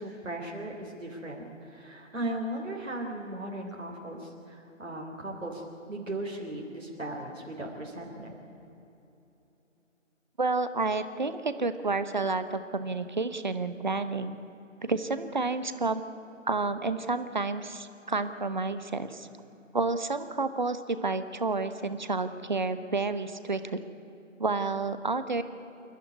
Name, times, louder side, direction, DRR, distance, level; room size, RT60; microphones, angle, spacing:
voice 1, 0.0-8.3, right 1 dB, 75° right, -1 dB, 3.5 m, -37 dB
voice 2, 10.4-14.4 14.8-16.0 16.5-19.3 19.7-23.8 24.4-25.4, right 3 dB, 35° right, 11 dB, 0.9 m, -30 dB
27.5 x 11.5 x 9.6 m, 3.0 s
figure-of-eight pair, 155°, 39 cm